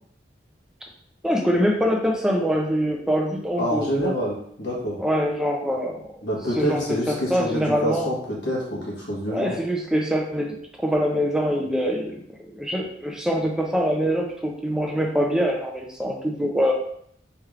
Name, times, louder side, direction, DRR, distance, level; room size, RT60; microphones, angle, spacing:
voice 1, 1.2-4.1 5.0-6.1 6.6-8.1 9.3-12.2 12.5-16.7, equal, 5° right, 0 dB, 0.4 m, -24 dB
voice 2, 3.6-5.0 6.2-9.5, equal, 80° left, -4 dB, 1.1 m, -27 dB
3.2 x 3.1 x 2.4 m, 0.66 s
head